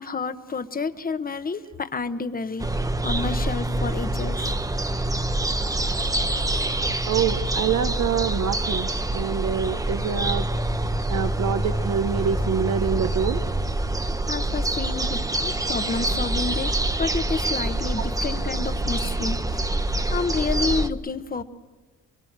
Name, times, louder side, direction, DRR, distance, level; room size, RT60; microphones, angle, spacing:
voice 1, 0.0-4.5 14.3-16.7 17.0-19.4 20.1-21.4, left 4 dB, 30° left, 11 dB, 1.2 m, -29 dB
sound 1, 2.6-20.9, right 1 dB, 10° right, 0.9 m, -26 dB
voice 2, 7.1-10.4 11.1-13.4 15.0-15.1, right 8 dB, 65° right, 8 dB, 1.1 m, -26 dB
24.0 x 23.5 x 7.5 m, 1.3 s
cardioid pair, 90°, 30 cm